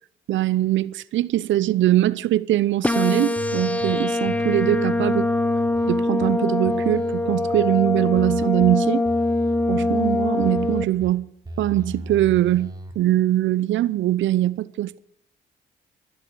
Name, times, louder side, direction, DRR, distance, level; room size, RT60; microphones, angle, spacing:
voice 1, 0.3-5.3 5.9-9.0 9.7-11.3 11.6-15.0, right 14 dB, 75° right, 0.7 m, -22 dB
sound 1, 2.8-10.8, left 2 dB, 5° left, 0.9 m, -23 dB
sound 2, 3.4-3.9 4.2-6.3 6.6-8.7 9.0-11.1 11.4-12.9, equal, 20° right, 3.7 m, -36 dB
13.5 x 11.5 x 7.9 m
cardioid pair, 90°, 20 cm